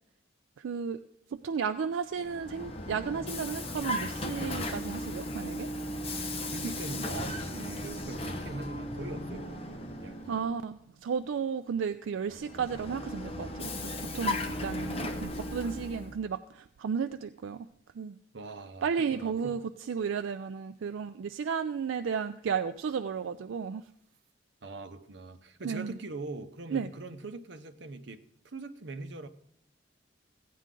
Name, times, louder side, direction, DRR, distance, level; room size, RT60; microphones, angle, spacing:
voice 1, 0.6-1.0 1.3-5.7 10.3-17.7 18.0-18.2 18.8-19.6 19.9-23.8 25.6-25.9 26.7-26.9, right 6 dB, 90° right, 0.4 m, -33 dB
Vehicle, 2.1-10.6 12.3-16.2, left 1 dB, 30° left, 0.8 m, -36 dB
voice 2, 6.5-10.4 14.5-14.9 18.3-19.6 24.6-29.3, right 3 dB, 70° right, 0.8 m, -42 dB
15.0 x 9.4 x 3.7 m
head